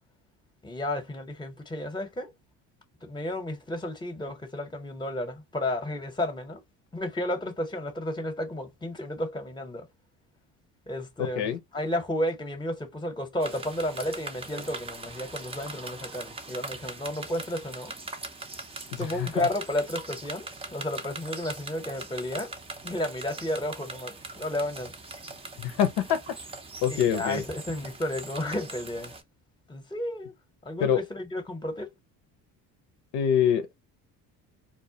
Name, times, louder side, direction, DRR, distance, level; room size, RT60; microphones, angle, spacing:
voice 1, 0.6-2.3 3.0-6.6 6.9-9.9 10.9-17.9 19.0-22.5 22.8-24.9 26.9-29.1 29.7-30.3 30.6-31.9, left 1 dB, 10° left, 0.8 m, -32 dB
sound 1, 13.4-29.2, right 3 dB, 15° right, 0.5 m, -41 dB
voice 2, 19.0-19.5 25.6-26.2 26.8-27.4 30.8-31.0 33.1-33.8, left 9 dB, 70° left, 0.6 m, -25 dB
2.1 x 2.1 x 2.7 m
supercardioid pair, 70°, 42 cm